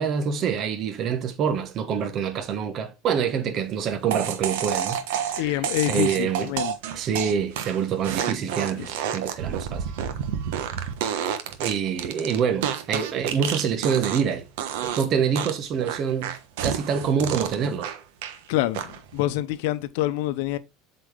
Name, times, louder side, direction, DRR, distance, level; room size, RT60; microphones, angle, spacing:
voice 1, 0.0-6.5 6.9-9.8 11.1-11.3 11.6-14.4 14.8-16.4 16.6-17.9, right 7 dB, 40° right, 1.2 m, -26 dB
sound 1, 4.1-14.3 14.6-15.1 15.4-18.4 18.7-19.2, right 9 dB, 85° right, 1.1 m, -29 dB
voice 2, 5.4-6.7 8.8-8.9 18.5-20.6, left 15 dB, 75° left, 0.7 m, -26 dB
7.8 x 4.2 x 3.3 m
supercardioid pair, 140°, 0 cm